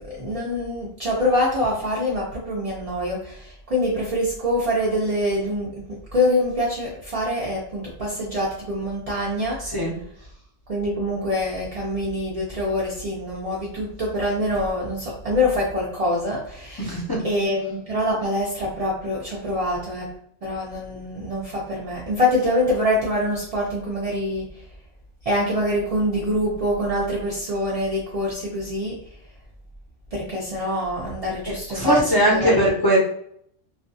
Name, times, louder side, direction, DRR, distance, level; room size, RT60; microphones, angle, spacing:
voice 1, 0.0-9.6 10.7-17.0 17.2-20.1 20.4-24.4 25.3-29.0 30.1-32.6, left 1 dB, 60° right, -4 dB, 0.4 m, -25 dB
voice 2, 16.8-17.2 31.5-33.0, right 1 dB, 30° left, -6 dB, 0.5 m, -20 dB
2.4 x 2.2 x 2.6 m, 0.67 s
omnidirectional pair, 1.3 m